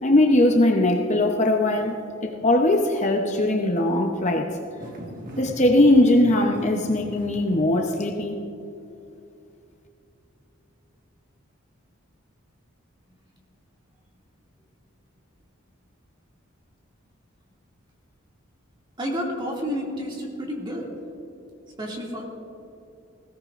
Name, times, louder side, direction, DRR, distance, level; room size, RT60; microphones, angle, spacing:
voice 1, 0.0-4.5 5.4-8.4, left 1 dB, 35° left, 2 dB, 0.8 m, -20 dB
sound 1, 4.8-8.3, equal, 40° right, 1.6 m, -40 dB
voice 2, 19.0-20.9 21.8-22.3, equal, 20° right, -2 dB, 2.3 m, -30 dB
20.0 x 17.0 x 2.5 m, 2.7 s
head